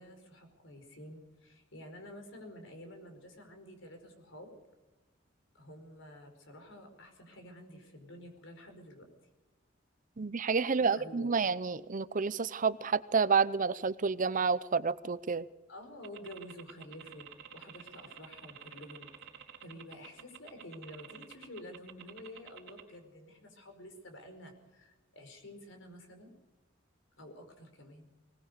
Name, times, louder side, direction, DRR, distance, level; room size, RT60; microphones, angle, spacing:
voice 1, 0.0-4.5 5.5-9.1 10.8-11.3 15.7-17.3 17.5-19.1 19.6-26.3 27.2-28.1, left 1 dB, 70° left, 6 dB, 4.8 m, -50 dB
voice 2, 10.2-15.4, right 5 dB, 40° right, 17 dB, 0.6 m, -29 dB
sound 1, 16.0-22.8, right 8 dB, 65° right, 3.6 m, -49 dB
20.5 x 20.0 x 6.8 m, 1.1 s
head